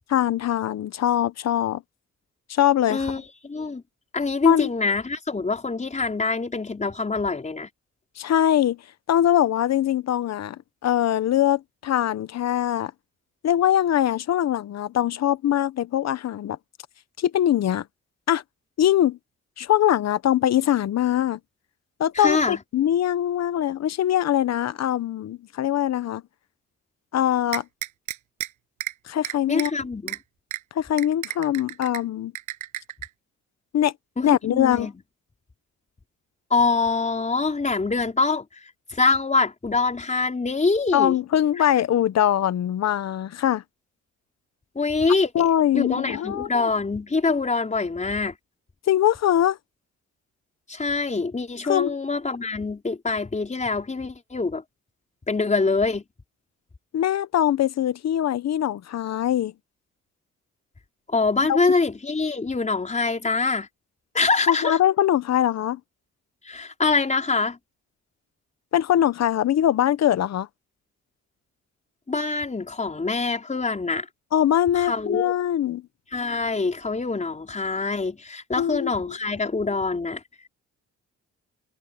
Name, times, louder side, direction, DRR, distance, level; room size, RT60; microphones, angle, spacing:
voice 1, 0.1-1.8 2.5-3.0 4.4-4.7 8.2-8.8 9.1-10.6 10.8-12.9 13.4-16.6 17.2-17.8 18.3-18.4 18.8-19.2 19.6-21.4 22.0-26.2 27.1-27.6 29.1-29.7 30.7-32.3 33.7-33.9 34.2-34.9 40.9-43.6 45.3-46.7 48.9-49.6 51.6-51.9 56.9-59.5 61.5-61.6 64.5-65.8 68.7-70.5 74.3-75.8 78.6-79.2, left 11 dB, 60° left, 1.0 m, -22 dB
voice 2, 2.9-3.8 4.1-7.7 22.1-22.6 29.5-30.2 34.2-34.9 36.5-38.4 38.9-41.2 44.7-45.4 45.7-48.3 50.7-54.6 55.3-56.0 61.1-63.7 64.1-64.8 66.4-67.6 72.1-74.1 74.7-75.3 76.1-80.2, left 4 dB, 25° left, 4.8 m, -24 dB
sound 1, 27.5-28.5 28.8-28.9 29.2-29.7 30.1-30.2 30.5-30.6 31.0-32.0 32.3-33.1, right 13 dB, 80° right, 7.0 m, -31 dB
cardioid pair, 90°, 30 cm